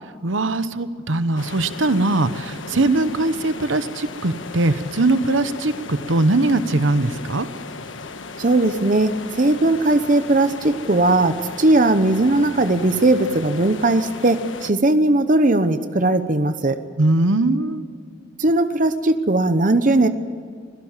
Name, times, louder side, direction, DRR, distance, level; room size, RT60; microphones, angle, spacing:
voice 1, 0.2-7.5 17.0-17.8, right 2 dB, 80° right, 12 dB, 1.0 m, -20 dB
sound 1, 1.4-14.7, left 3 dB, 75° left, 1.3 m, -36 dB
voice 2, 8.4-16.8 18.4-20.1, right 2 dB, 45° right, 10 dB, 0.9 m, -18 dB
24.5 x 17.0 x 7.4 m, 2.2 s
head